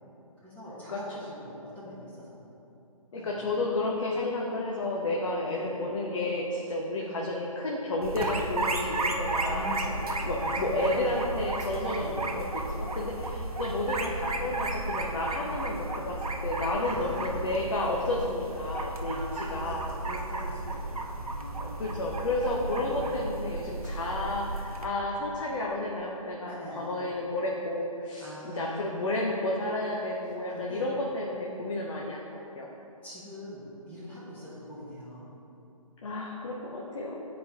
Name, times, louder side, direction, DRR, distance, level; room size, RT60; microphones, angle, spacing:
voice 1, 0.4-2.5 3.1-3.4 5.4-5.8 7.0-7.4 9.3-11.2 11.9-12.3 14.0-14.2 15.3-15.5 16.8-17.4 19.0-22.1 22.6-23.4 26.4-27.0 28.2-29.1 30.5-30.9 33.0-35.3, left 1 dB, 10° left, -8 dB, 1.0 m, -43 dB
voice 2, 3.1-9.6 10.2-19.8 21.6-32.7 36.0-37.2, left 2 dB, 55° left, -3 dB, 0.8 m, -31 dB
sound 1, 8.0-24.9, right 2 dB, 80° right, 0.9 m, -33 dB
10.0 x 4.3 x 2.8 m, 2.9 s
figure-of-eight pair, 145°, 19 cm